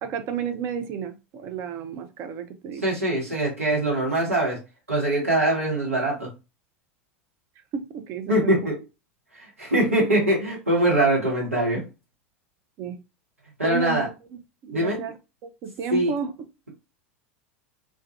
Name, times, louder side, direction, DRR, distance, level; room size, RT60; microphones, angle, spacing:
voice 1, 0.0-2.8 7.7-8.6 12.8-13.0 13.6-15.1 15.4-16.3, right 7 dB, 40° right, 8 dB, 0.5 m, -32 dB
voice 2, 2.8-4.6 4.9-6.3 8.3-8.8 9.3-11.9 13.6-14.1 14.7-15.0 15.9-16.1, right 1 dB, 80° right, -3 dB, 0.9 m, -23 dB
2.2 x 2.1 x 2.6 m, 0.27 s
figure-of-eight pair, 80°, 7 cm